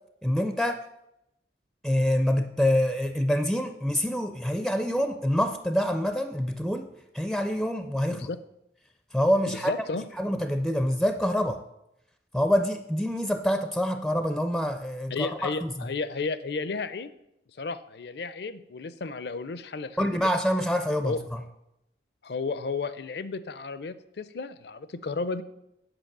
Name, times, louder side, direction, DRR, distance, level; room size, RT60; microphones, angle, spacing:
voice 1, 0.2-0.8 1.8-6.9 7.1-8.3 9.1-9.7 10.2-11.6 12.3-15.9 20.0-21.4, equal, ahead, 8 dB, 0.4 m, -26 dB
voice 2, 9.5-10.0 15.1-17.1 17.6-20.3 21.0-21.2 22.2-25.4, left 4 dB, 65° left, 14 dB, 0.5 m, -33 dB
8.9 x 5.4 x 6.6 m, 0.85 s
head